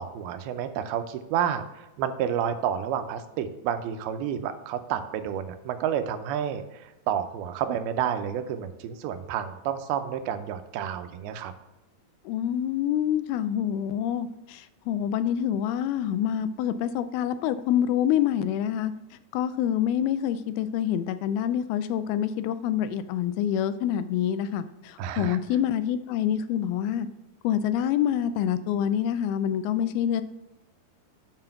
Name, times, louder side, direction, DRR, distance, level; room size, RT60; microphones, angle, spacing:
voice 1, 0.0-11.5 25.0-25.4, right 9 dB, 85° right, 9 dB, 2.5 m, -30 dB
voice 2, 12.3-18.9 19.3-27.1 27.4-30.2, left 10 dB, 85° left, 12 dB, 2.4 m, -26 dB
7.6 x 4.8 x 5.6 m, 1.0 s
omnidirectional pair, 4.4 m